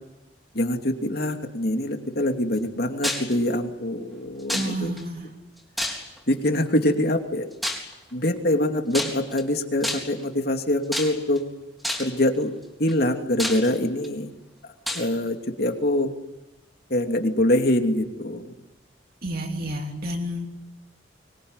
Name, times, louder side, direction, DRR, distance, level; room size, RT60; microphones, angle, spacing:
voice 1, 0.5-4.9 6.3-7.5 8.1-11.4 12.0-12.5 12.8-14.3 14.6-16.1 16.9-18.5, left 1 dB, 55° left, 4 dB, 2.8 m, -24 dB
sound 1, 3.0-3.3 4.5-5.0 5.8-6.3 7.6-7.9 8.9-9.4 9.8-10.2 10.9-11.4 11.8-12.2 12.9-13.0 13.4-14.1 14.9-15.1, left 1 dB, ahead, 4.1 m, -29 dB
voice 2, 4.5-5.3 19.2-20.5, equal, 50° right, 2 dB, 3.1 m, -30 dB
24.5 x 22.5 x 9.8 m, 0.99 s
head